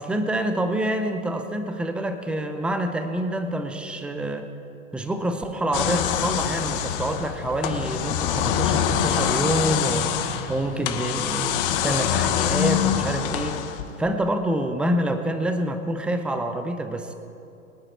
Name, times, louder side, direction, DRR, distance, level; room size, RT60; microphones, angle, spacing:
voice 1, 0.0-4.5 4.9-13.6 14.0-17.1, right 1 dB, 5° right, 7 dB, 0.6 m, -27 dB
sound 1, 5.7-14.0, left 10 dB, 40° left, 1.2 m, -25 dB
sound 2, 7.8-13.6, right 1 dB, 30° right, 3.4 m, -39 dB
23.5 x 8.9 x 4.3 m, 2.7 s
hypercardioid pair, 115°, 42 cm